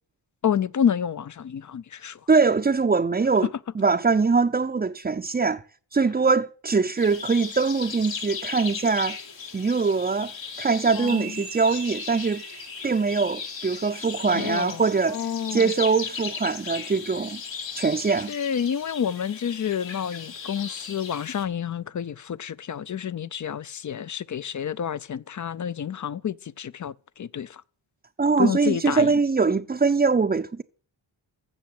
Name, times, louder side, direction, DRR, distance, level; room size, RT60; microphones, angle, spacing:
voice 1, 0.4-2.2 10.9-11.4 14.3-14.8 15.1-15.7 18.3-27.6 28.4-29.2, left 8 dB, 40° left, 0.5 m, -29 dB
voice 2, 2.3-3.5 3.8-5.6 5.9-9.2 9.5-12.4 12.8-15.2 15.5-17.4 17.7-18.3 28.2-30.6, right 4 dB, 20° right, 0.6 m, -22 dB
sound 1, 7.0-21.4, left 6 dB, 75° left, 2.7 m, -37 dB
sound 2, 11.1-14.6, right 14 dB, 65° right, 0.8 m, -44 dB
15.0 x 6.3 x 7.6 m
cardioid pair, 70°, 45 cm